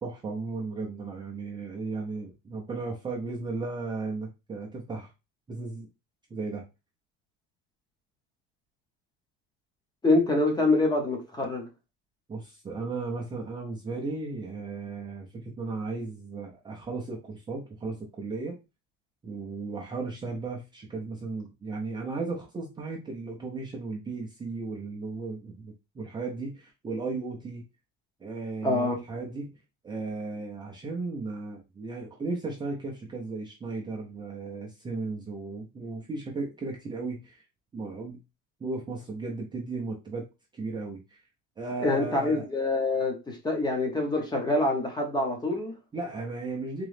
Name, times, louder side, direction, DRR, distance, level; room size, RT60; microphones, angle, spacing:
voice 1, 0.0-5.1 5.5-5.9 6.3-6.7 12.3-18.6 19.2-27.6 28.2-37.5 37.7-38.2 38.6-40.3 40.5-41.2 41.6-42.5 45.9-46.9, right 3 dB, 15° right, 0.5 m, -35 dB
voice 2, 10.0-11.7 28.6-29.0 41.8-45.7, left 2 dB, 15° left, 0.8 m, -25 dB
3.8 x 3.0 x 3.2 m
cardioid pair, 175°, 31 cm